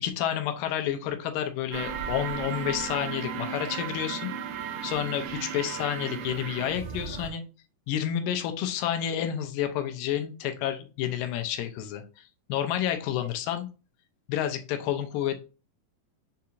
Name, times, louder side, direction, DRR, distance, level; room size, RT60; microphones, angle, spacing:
voice 1, 0.0-4.3 4.8-7.4 7.9-12.2 12.5-13.7 14.3-15.4, left 10 dB, 90° left, 7 dB, 2.3 m, -30 dB
sound 1, 1.7-7.3, right 7 dB, 85° right, 2.4 m, -35 dB
6.7 x 2.8 x 2.4 m, 0.33 s
omnidirectional pair, 3.9 m